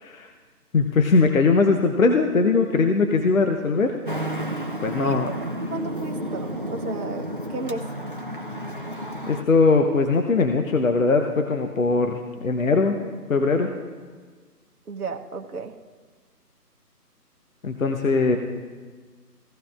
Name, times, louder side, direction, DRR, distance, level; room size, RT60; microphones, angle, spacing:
voice 1, 0.7-4.0 4.8-5.3 9.3-13.0 13.3-13.8 17.6-18.4, left 4 dB, 55° left, 4 dB, 0.9 m, -20 dB
Traffic noise roadway noise, 4.0-9.4, equal, 35° right, 0.5 m, -31 dB
voice 2, 5.7-7.9 14.9-15.8, right 3 dB, 65° right, 3 dB, 1.0 m, -33 dB
17.0 x 14.5 x 2.5 m, 1.5 s
figure-of-eight pair, 155°, 48 cm